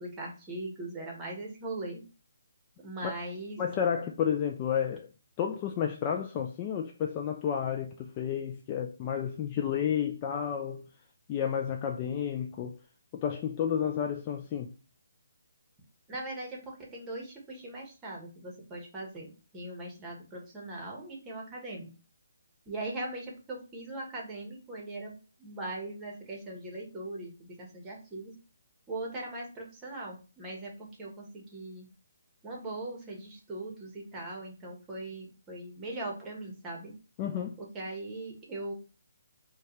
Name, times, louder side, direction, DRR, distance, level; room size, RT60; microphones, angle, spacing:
voice 1, 0.0-2.0 2.8-3.6 16.1-21.9 22.7-28.4 28.9-31.9 32.4-36.9 37.6-38.7, right 2 dB, 15° right, 1.2 m, -40 dB
voice 2, 3.6-5.1 5.4-10.8 11.3-12.8 13.1-14.7 37.2-37.6, left 8 dB, 25° left, 0.3 m, -31 dB
4.4 x 2.3 x 3.1 m
figure-of-eight pair, 150°, 0 cm